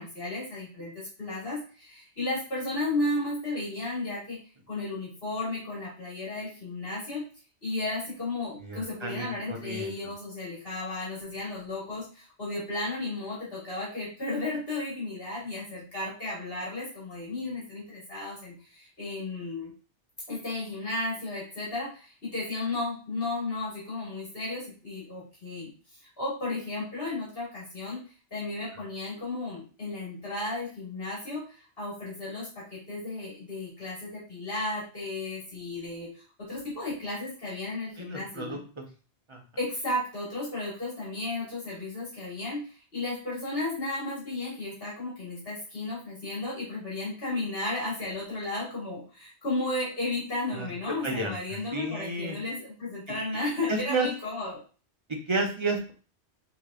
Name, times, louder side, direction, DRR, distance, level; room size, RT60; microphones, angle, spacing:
voice 1, 0.0-4.4 4.7-7.2 7.6-19.7 20.3-28.0 28.3-38.6 39.6-54.6, left 2 dB, 55° left, -6 dB, 2.0 m, -34 dB
voice 2, 8.6-10.0 38.0-38.8 39.3-39.4 50.5-50.7 51.0-52.4 53.1-53.2 53.7-54.1 55.1-55.9, right 3 dB, 30° right, 2 dB, 0.8 m, -32 dB
6.5 x 3.2 x 2.4 m, 0.38 s
omnidirectional pair, 1.2 m